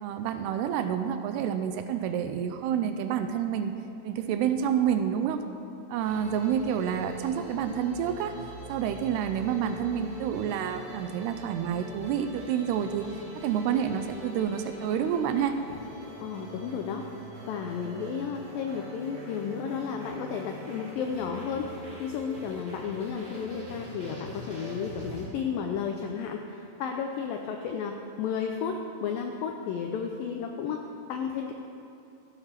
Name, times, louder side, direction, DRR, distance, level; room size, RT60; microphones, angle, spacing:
voice 1, 0.0-3.8 4.0-5.4 5.9-8.4 8.7-13.1 13.4-15.6, right 8 dB, 85° right, 8 dB, 2.5 m, -28 dB
sound 1, 6.0-25.2, equal, 25° right, 1.8 m, -43 dB
voice 2, 16.2-17.0 17.5-21.7 22.0-30.8 31.1-31.6, left 6 dB, 90° left, 3 dB, 2.0 m, -33 dB
13.0 x 7.9 x 5.8 m, 2.7 s
omnidirectional pair, 4.8 m